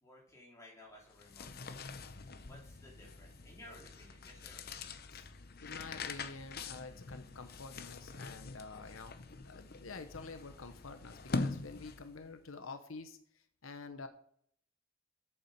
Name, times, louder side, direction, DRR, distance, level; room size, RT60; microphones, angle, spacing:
voice 1, 0.0-1.9 2.4-5.3, left 1 dB, 15° left, -4 dB, 3.7 m, -57 dB
sound 1, 1.1-12.3, left 3 dB, 50° left, 0.8 m, -44 dB
voice 2, 5.6-13.2 13.6-14.1, left 4 dB, 85° left, 8 dB, 1.0 m, -48 dB
8.5 x 7.2 x 6.6 m, 0.63 s
head